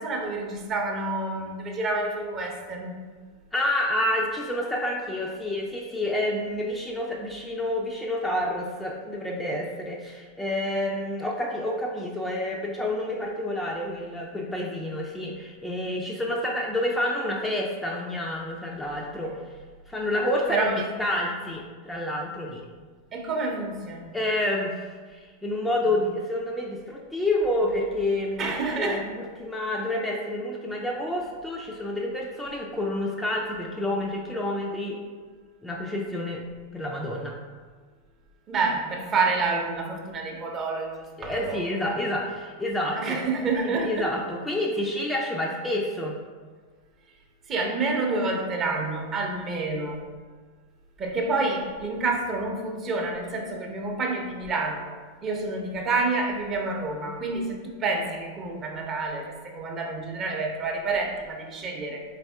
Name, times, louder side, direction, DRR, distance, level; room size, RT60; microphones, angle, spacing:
voice 1, 0.0-2.9 20.5-20.9 23.1-24.1 28.4-29.1 38.5-42.0 42.9-44.1 47.5-50.0 51.0-54.9 55.2-62.0, right 3 dB, 30° right, 1 dB, 0.7 m, -28 dB
voice 2, 3.5-19.4 19.9-20.7 21.0-22.6 24.1-35.0 35.6-36.4 36.7-37.3 41.2-43.2 43.6-46.2, left 1 dB, 5° left, -2 dB, 0.4 m, -29 dB
4.0 x 3.4 x 3.4 m, 1.5 s
figure-of-eight pair, 90°, 0 cm